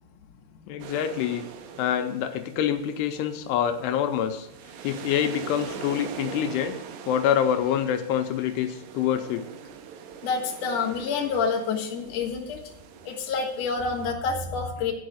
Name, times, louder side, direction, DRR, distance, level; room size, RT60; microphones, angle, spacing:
voice 1, 0.7-1.4 1.8-4.5 4.8-6.8 7.1-9.4, left 9 dB, 85° left, 7 dB, 2.7 m, -26 dB
sound 1, 0.8-14.1, right 7 dB, 85° right, 2.9 m, -43 dB
voice 2, 10.2-12.6 13.1-14.9, left 5 dB, 60° left, 0 dB, 1.8 m, -28 dB
11.0 x 4.8 x 7.9 m, 0.82 s
omnidirectional pair, 4.9 m